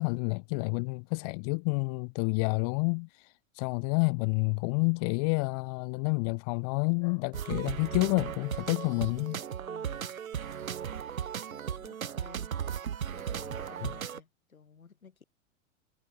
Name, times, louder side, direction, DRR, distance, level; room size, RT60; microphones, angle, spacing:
voice 1, 0.0-9.4 13.8-13.9, left 38 dB, 30° left, 0.4 m, -29 dB
sound 1, 7.3-14.2, right 8 dB, 75° right, 1.6 m, -36 dB
voice 2, 9.7-10.2 11.5-12.5 13.1-15.2, left 6 dB, 80° left, 6.4 m, -53 dB
figure-of-eight pair, 90°, 42 cm